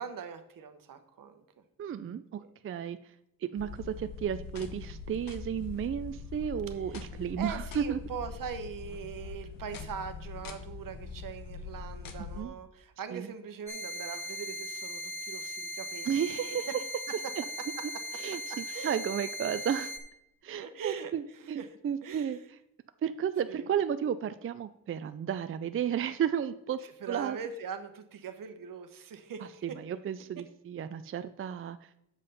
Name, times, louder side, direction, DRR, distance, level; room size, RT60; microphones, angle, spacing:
voice 1, 0.0-1.4 2.4-2.5 6.9-7.0 7.4-16.8 17.1-17.2 17.8-17.9 18.5-19.0 20.6-22.4 23.5-23.6 26.8-29.8, right 7 dB, 75° right, 8 dB, 1.0 m, -42 dB
voice 2, 1.8-3.0 3.5-8.0 12.2-12.6 13.1-13.3 16.1-16.7 18.1-19.9 20.4-22.4 23.0-26.8 27.1-27.4 29.6-31.8, right 8 dB, 40° right, 12 dB, 0.4 m, -33 dB
sound 1, 3.6-12.4, left 5 dB, 80° left, 0.9 m, -43 dB
sound 2, 13.7-20.0, equal, 10° left, 1.9 m, -39 dB
7.5 x 5.5 x 5.3 m, 0.79 s
cardioid pair, 80°, 33 cm